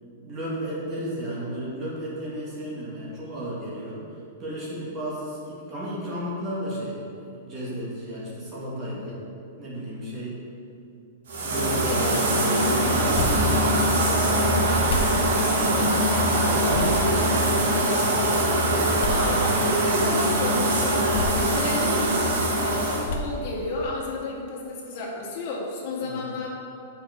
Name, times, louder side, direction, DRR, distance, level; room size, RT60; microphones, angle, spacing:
voice 1, 0.0-4.0 4.4-9.2 9.6-10.4 11.4-14.8 15.4-17.6 26.0-26.3, right 1 dB, 25° right, -6 dB, 1.9 m, -33 dB
sound 1, 11.3-23.1, right 1 dB, 80° right, 1.9 m, -22 dB
sound 2, 12.7-23.8, left 1 dB, 70° left, 1.1 m, -35 dB
voice 2, 19.0-21.1 21.5-26.5, left 2 dB, 40° left, -4 dB, 2.0 m, -32 dB
8.8 x 5.9 x 4.4 m, 2.5 s
supercardioid pair, 165°, 0 cm